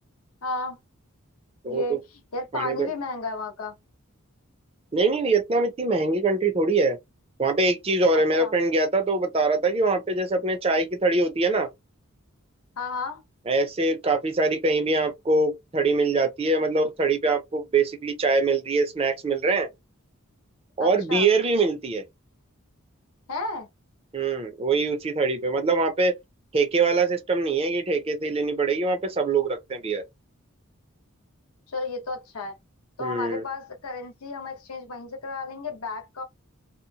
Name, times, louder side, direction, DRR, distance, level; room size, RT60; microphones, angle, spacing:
voice 1, 0.4-0.8 1.6-2.0 2.3-3.8 8.4-8.5 12.8-13.2 20.8-21.3 23.3-23.7 31.7-32.6 33.0-36.2, left 3 dB, 85° left, 0.9 m, -33 dB
voice 2, 1.6-2.0 2.5-2.9 4.9-7.0 7.4-11.7 13.5-19.7 20.8-22.0 24.1-26.1 26.5-30.0 33.0-33.4, right 3 dB, 25° right, 0.5 m, -23 dB
2.8 x 2.0 x 2.8 m
head